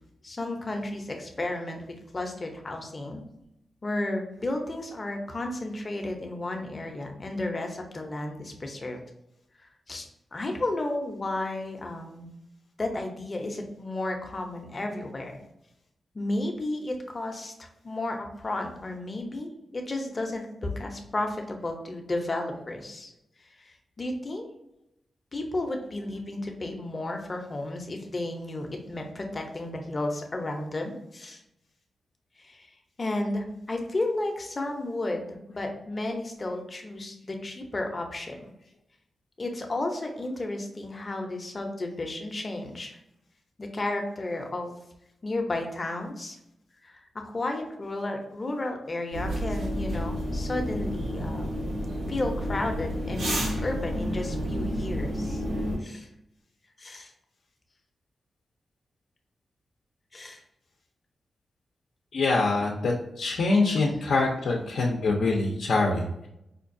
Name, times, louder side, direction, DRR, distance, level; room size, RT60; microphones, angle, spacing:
voice 1, 0.2-1.8 2.1-3.2 3.8-9.0 9.6-12.3 12.8-15.4 16.1-23.1 23.4-24.5 25.3-31.4 32.4-32.7 33.0-38.4 39.4-43.0 43.6-44.8 45.2-46.4 46.8-51.6 52.1-53.4 53.6-55.4 55.8-56.1 56.8-57.1 60.1-60.4 64.4-64.7, left 2 dB, 30° left, 3 dB, 0.6 m, -33 dB
sound 1, 49.1-55.8, equal, 85° right, 1.0 m, -30 dB
voice 2, 62.1-66.3, left 3 dB, 85° left, -2 dB, 0.5 m, -25 dB
5.0 x 2.3 x 2.6 m, 0.83 s
wide cardioid pair, 115°, 0 cm